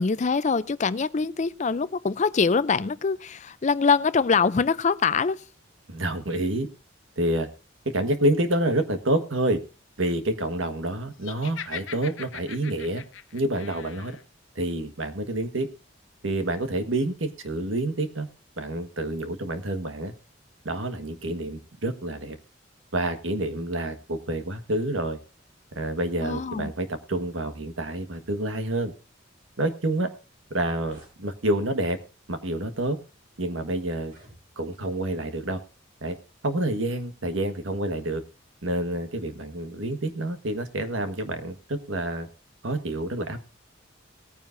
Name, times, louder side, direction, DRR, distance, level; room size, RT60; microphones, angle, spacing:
voice 1, 0.0-5.4 26.2-26.7, left 5 dB, 35° left, 0.4 m, -24 dB
voice 2, 5.9-6.7 7.2-7.5 7.9-9.6 10.0-13.0 13.3-14.2 14.5-15.7 16.2-18.3 18.6-20.1 20.6-22.4 22.9-25.2 25.7-28.9 29.6-30.1 30.5-32.0 32.3-33.0 33.4-34.1 34.6-35.6 36.0-36.2 36.4-38.2 38.6-42.3 42.6-43.4, right 1 dB, 85° right, 1.5 m, -28 dB
Laughter, 11.2-14.2, left 8 dB, 80° left, 0.7 m, -40 dB
sound 1, 30.5-31.2 32.0-32.2 32.9-33.0 33.9-34.8, right 1 dB, 50° right, 5.2 m, -55 dB
19.0 x 9.6 x 2.6 m
head